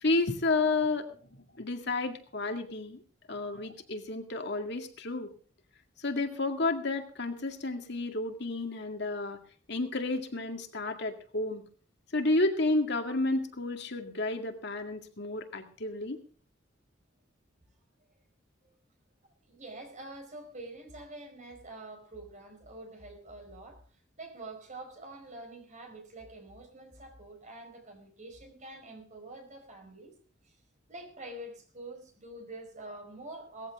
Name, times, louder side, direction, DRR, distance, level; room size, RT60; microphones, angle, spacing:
voice 1, 0.0-1.1 1.6-3.0 3.3-5.3 6.0-9.4 9.7-11.6 12.1-16.2, left 2 dB, 60° left, 5 dB, 2.1 m, -31 dB
voice 2, 19.4-30.2 30.4-30.6 30.9-33.7, right 2 dB, 40° right, 4 dB, 4.6 m, -46 dB
18.5 x 14.5 x 3.6 m, 0.42 s
head